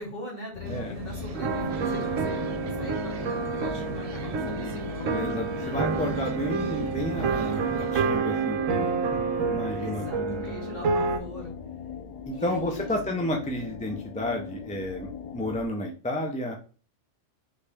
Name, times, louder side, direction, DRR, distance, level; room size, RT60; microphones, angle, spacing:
voice 1, 0.0-2.4 2.8-5.1 9.8-11.5 12.3-13.3, left 1 dB, 45° left, -5 dB, 2.4 m, -40 dB
sound 1, 0.5-15.7, left 7 dB, 65° left, 0.4 m, -39 dB
sound 2, 0.6-7.9, right 6 dB, 50° right, 0.4 m, -39 dB
sound 3, 1.3-11.2, right 5 dB, 80° right, 1.1 m, -29 dB
voice 2, 5.1-8.9 9.3-10.5 12.2-16.5, left 1 dB, 10° left, 1 dB, 0.5 m, -32 dB
4.2 x 3.2 x 3.4 m, 0.36 s
omnidirectional pair, 1.3 m